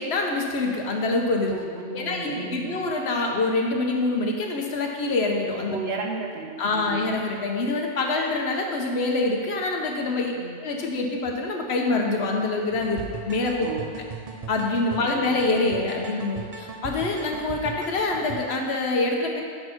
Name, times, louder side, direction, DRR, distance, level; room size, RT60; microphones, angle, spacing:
voice 1, 0.0-1.5 1.9-5.8 6.6-10.3 10.6-13.7 14.5-19.4, left 2 dB, 75° left, 1 dB, 1.1 m, -25 dB
voice 2, 1.5-2.8 5.7-7.1 10.4-10.5 13.6-13.9 15.1-15.3, right 4 dB, 75° right, 1 dB, 1.1 m, -34 dB
sound 1, 12.7-18.4, right 4 dB, 40° right, 0.6 m, -38 dB
6.7 x 4.3 x 5.8 m, 2.1 s
omnidirectional pair, 1.1 m